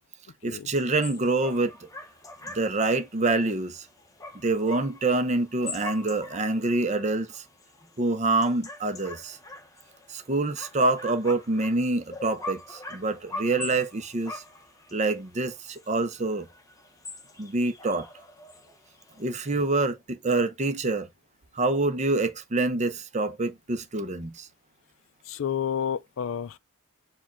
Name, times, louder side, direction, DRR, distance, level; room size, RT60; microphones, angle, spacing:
voice 1, 0.4-1.7 2.5-3.9 4.4-7.4 8.0-9.4 10.1-14.4 14.9-16.5 17.4-18.1 19.2-21.1 21.5-24.5, right 2 dB, 35° right, 0.6 m, -26 dB
sound 1, 0.7-19.5, left 2 dB, 15° left, 0.8 m, -44 dB
voice 2, 25.2-26.6, left 8 dB, 65° left, 0.4 m, -30 dB
4.8 x 2.3 x 4.3 m
head